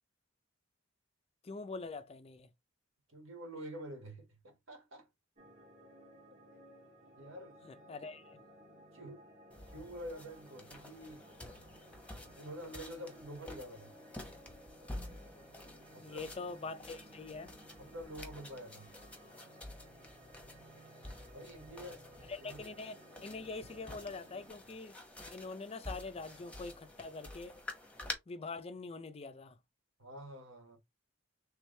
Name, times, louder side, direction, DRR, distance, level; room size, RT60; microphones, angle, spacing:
voice 1, 1.4-2.5 7.7-8.4 16.0-17.5 22.3-23.0 23.2-25.0 25.3-27.6 28.3-29.6, left 3 dB, 30° left, 0.4 m, -44 dB
voice 2, 3.1-5.1 7.2-7.6 8.9-9.3 9.7-11.3 12.4-13.9 15.9-16.3 17.8-18.9 21.3-22.0 22.4-22.6 30.0-30.8, equal, 80° right, 1.7 m, -47 dB
sound 1, 5.4-24.5, right 1 dB, 40° right, 1.2 m, -58 dB
sound 2, 9.5-28.1, left 2 dB, 5° left, 0.9 m, -49 dB
3.4 x 3.1 x 3.2 m
head